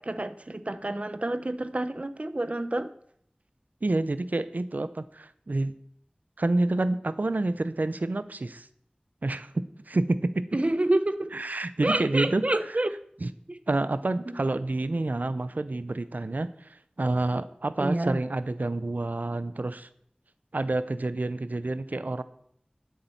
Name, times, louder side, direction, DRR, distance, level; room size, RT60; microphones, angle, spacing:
voice 1, 0.0-2.9 10.5-11.4 11.8-12.9 13.5-13.6 14.3-14.4 17.8-18.2, right 1 dB, 50° right, 11 dB, 0.8 m, -28 dB
voice 2, 3.8-5.7 6.4-8.7 9.2-9.5 9.9-10.4 11.3-12.4 13.2-13.3 13.7-16.7 17.0-19.9 20.5-22.2, right 2 dB, 80° right, 13 dB, 0.6 m, -28 dB
11.0 x 8.5 x 5.7 m, 0.67 s
wide cardioid pair, 40°, 3 cm